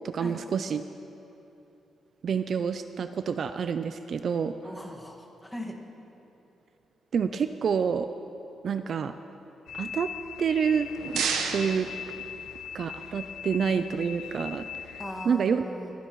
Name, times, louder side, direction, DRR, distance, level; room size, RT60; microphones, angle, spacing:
voice 1, 0.0-0.8 2.2-4.5 7.1-8.1 8.6-9.1 9.7-10.1 10.4-11.2 11.5-11.9 12.7-15.0 15.3-15.6, right 6 dB, 55° right, 9 dB, 0.4 m, -28 dB
voice 2, 4.6-5.8 15.0-15.9, left 1 dB, 5° left, 0 dB, 1.7 m, -39 dB
sound 1, 9.7-15.3, left 9 dB, 75° left, 0.4 m, -40 dB
sound 2, 10.6-12.8, right 6 dB, 90° right, 1.0 m, -33 dB
25.5 x 11.0 x 3.1 m, 3.0 s
cardioid pair, 120°, 0 cm